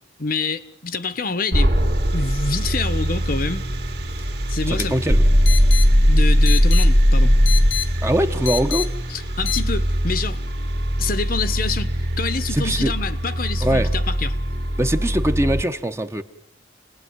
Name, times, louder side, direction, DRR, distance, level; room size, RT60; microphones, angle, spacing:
voice 1, 0.2-1.7 2.1-3.6 4.5-5.0 6.1-7.4 9.1-10.4 11.0-14.4, left 4 dB, 45° left, 1.1 m, -27 dB
sound 1, 1.5-15.6, equal, 55° right, 2.5 m, -24 dB
sound 2, 3.3-9.6, left 10 dB, 80° left, 1.5 m, -31 dB
voice 2, 4.7-5.2 8.0-8.9 12.5-12.9 13.6-13.9 14.8-16.2, right 1 dB, 15° right, 1.0 m, -22 dB
sound 3, 5.1-7.9, equal, 70° right, 2.5 m, -15 dB
29.5 x 19.5 x 9.6 m
head